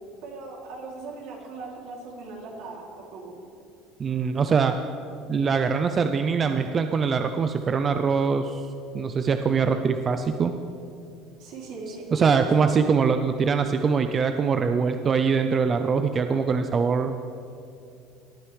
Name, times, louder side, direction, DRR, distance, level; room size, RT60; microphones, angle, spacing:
voice 1, 0.2-3.4 11.4-12.7, right 3 dB, 75° right, -2 dB, 2.9 m, -39 dB
voice 2, 4.0-4.8 5.3-8.6 8.9-10.5 12.1-17.2, right 5 dB, 35° right, 8 dB, 0.4 m, -23 dB
18.0 x 9.8 x 3.3 m, 2.6 s
supercardioid pair, 105°, 0 cm